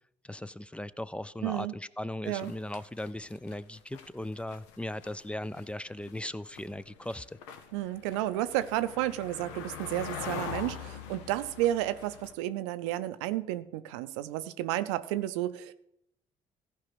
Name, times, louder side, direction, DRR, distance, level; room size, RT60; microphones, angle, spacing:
voice 1, 0.2-7.4, left 1 dB, 10° left, 0.4 m, -38 dB
voice 2, 1.4-1.7 2.3-2.5 7.7-15.7, right 14 dB, 85° right, 0.5 m, -32 dB
Walking to Palas de Rei, 2.3-4.8 5.0-12.3, left 8 dB, 85° left, 0.8 m, -43 dB
14.5 x 5.0 x 6.0 m
hypercardioid pair, 55°, 14 cm